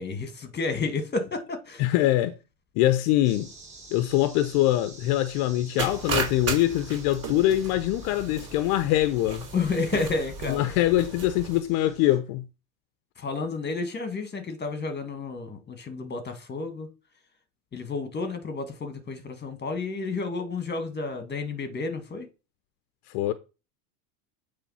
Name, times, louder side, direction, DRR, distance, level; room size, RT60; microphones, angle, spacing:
voice 1, 0.0-1.8 9.5-10.8 13.2-16.9 17.7-22.3, left 3 dB, 20° left, 1.9 m, -31 dB
voice 2, 1.8-2.3 2.8-3.5 3.9-9.4 10.5-12.4 23.1-23.3, left 14 dB, 65° left, 0.8 m, -23 dB
sound 1, 3.2-12.2, right 3 dB, 15° right, 3.3 m, -49 dB
sound 2, 5.8-11.6, right 4 dB, 30° right, 3.4 m, -34 dB
8.4 x 3.5 x 5.5 m
supercardioid pair, 115°, 45 cm